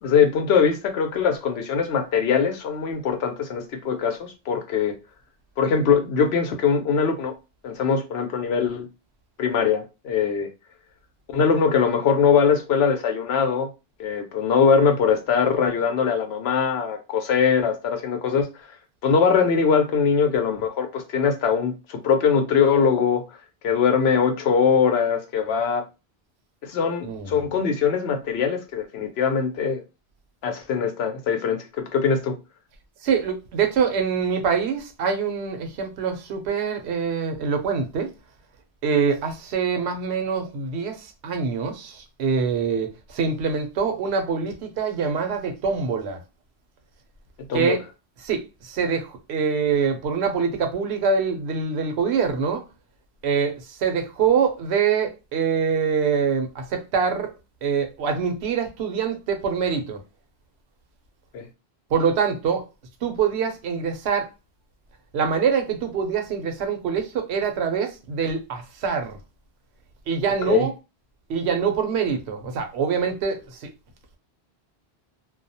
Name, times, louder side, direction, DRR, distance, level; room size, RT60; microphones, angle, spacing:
voice 1, 0.0-4.9 5.6-7.3 7.6-8.9 9.4-10.5 11.3-13.7 14.0-18.5 19.0-23.2 23.6-25.8 26.6-29.8 30.4-32.3 47.5-47.8 61.3-61.5 70.5-70.7, left 6 dB, 80° left, 0.8 m, -22 dB
voice 2, 27.0-27.4 33.0-38.1 38.8-46.2 47.5-47.8 48.2-52.7 53.2-57.3 57.6-60.0 61.9-62.6 63.0-64.3 65.1-69.2 70.1-70.7 71.3-73.7, right 6 dB, 85° right, 0.9 m, -24 dB
2.3 x 2.0 x 2.6 m
omnidirectional pair, 1.1 m